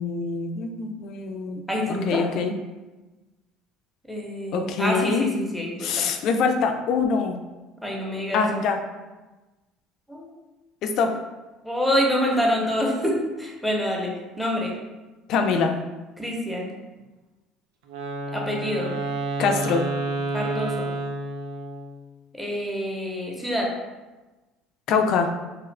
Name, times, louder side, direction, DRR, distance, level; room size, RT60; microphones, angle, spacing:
voice 1, 0.0-1.6 1.9-2.5 4.5-5.2 5.8-7.4 8.3-8.8 10.8-11.1 15.3-15.8 19.4-19.8 24.9-25.3, left 5 dB, 65° left, 5 dB, 0.3 m, -24 dB
voice 2, 1.7-2.2 4.0-6.1 7.8-8.6 10.1-10.3 11.6-14.7 16.2-16.7 18.3-18.9 20.3-20.9 22.3-23.7, equal, ahead, -2 dB, 0.8 m, -26 dB
Wind instrument woodwind instrument, 17.9-22.0, right 2 dB, 85° right, 0.4 m, -30 dB
2.8 x 2.4 x 3.1 m, 1.1 s
supercardioid pair, 85°, 0 cm